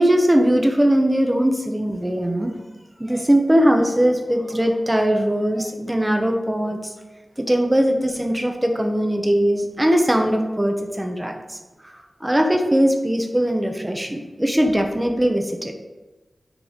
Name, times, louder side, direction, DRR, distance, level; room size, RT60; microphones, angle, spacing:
voice 1, 0.0-2.6 3.0-6.9 7.4-11.6 11.8-11.9 12.2-15.7, equal, 15° right, 4 dB, 1.0 m, -20 dB
6.2 x 4.8 x 5.2 m, 1.2 s
wide cardioid pair, 70°, 0 cm